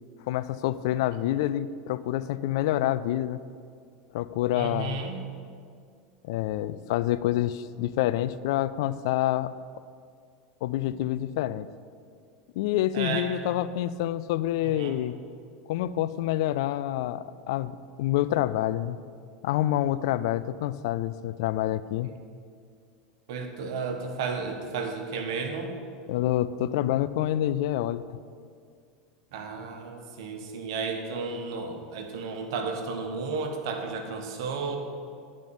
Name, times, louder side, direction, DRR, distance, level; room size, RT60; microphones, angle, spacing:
voice 1, 0.3-3.4 4.1-5.0 6.2-9.5 10.6-11.7 12.6-15.1 15.7-19.0 19.4-22.1 26.1-28.0, left 13 dB, 70° left, 15 dB, 0.4 m, -27 dB
voice 2, 4.5-5.2 12.9-13.3 14.6-15.0 23.3-25.7 29.3-34.8, right 4 dB, 70° right, 5 dB, 1.3 m, -33 dB
11.0 x 5.3 x 7.1 m, 2.2 s
hypercardioid pair, 90°, 3 cm